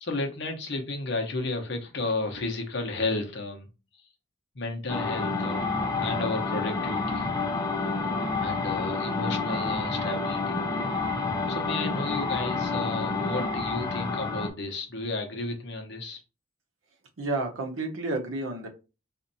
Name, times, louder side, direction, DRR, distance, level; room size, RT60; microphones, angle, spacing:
voice 1, 0.0-3.7 4.5-7.3 8.4-10.6 11.5-16.2, left 2 dB, 55° left, 3 dB, 0.8 m, -33 dB
sound 1, 4.9-14.5, left 3 dB, 20° left, 0.5 m, -29 dB
voice 2, 17.2-18.7, right 2 dB, 85° right, 2 dB, 0.8 m, -30 dB
4.3 x 2.6 x 2.7 m, 0.30 s
head